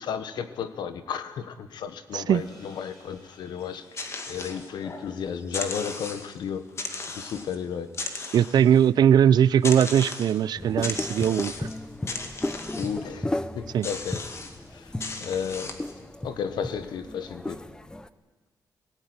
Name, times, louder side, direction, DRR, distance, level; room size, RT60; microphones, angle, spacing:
voice 1, 0.0-7.9 12.7-14.3 14.7-14.9 15.2-15.7 16.2-17.6, left 7 dB, 85° left, 11 dB, 1.4 m, -33 dB
sound 1, 2.3-6.9, left 1 dB, 65° left, 6.8 m, -57 dB
sound 2, 3.6-5.1 5.4-6.4 6.8-7.6 7.9-8.9 9.6-10.4 10.8-11.8 12.1-13.0 13.8-14.6 15.0-15.9, left 3 dB, 40° left, 2.0 m, -36 dB
voice 2, 8.3-11.7 13.7-13.9, right 9 dB, 70° right, 19 dB, 0.6 m, -20 dB
sound 3, 10.6-18.1, left 1 dB, 10° left, 0.7 m, -35 dB
17.5 x 17.0 x 9.7 m, 1.3 s
cardioid pair, 130°, 7 cm